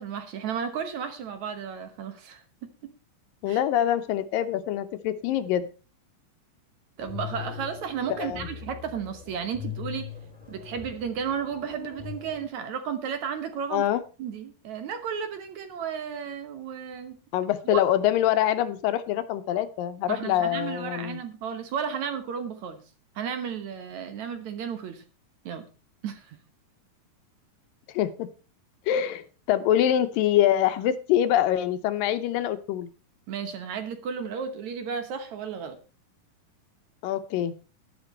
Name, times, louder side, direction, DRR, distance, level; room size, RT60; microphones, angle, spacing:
voice 1, 0.0-2.9 3.5-3.6 7.0-10.1 10.5-13.9 14.2-17.2 17.7-17.8 20.1-22.8 23.2-25.0 25.5-25.7 26.0-26.4 33.3-35.8, right 7 dB, 65° right, 8 dB, 2.2 m, -33 dB
voice 2, 3.4-5.7 8.2-8.5 13.7-14.0 17.3-21.2 27.9-28.3 28.9-32.9 37.0-37.5, left 11 dB, 80° left, 12 dB, 2.4 m, -25 dB
sound 1, 7.0-12.5, left 8 dB, 5° right, 2.3 m, -40 dB
11.5 x 11.0 x 4.4 m, 0.34 s
omnidirectional pair, 4.1 m